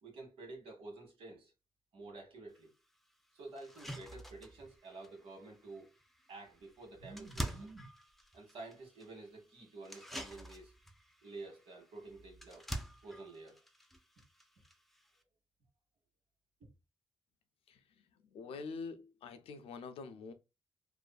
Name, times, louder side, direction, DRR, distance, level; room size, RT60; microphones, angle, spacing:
voice 1, 0.0-1.5 1.9-2.7 3.3-5.9 6.3-7.9 8.3-10.7 11.2-12.7 13.0-13.6 16.6-16.7, right 3 dB, 80° right, 1.2 m, -50 dB
sound 1, 2.6-2.7 3.1-3.2 3.6-15.2, right 1 dB, ahead, 0.4 m, -48 dB
voice 2, 18.3-20.3, left 4 dB, 90° left, 0.4 m, -45 dB
2.6 x 2.4 x 2.2 m
cardioid pair, 85°, 10 cm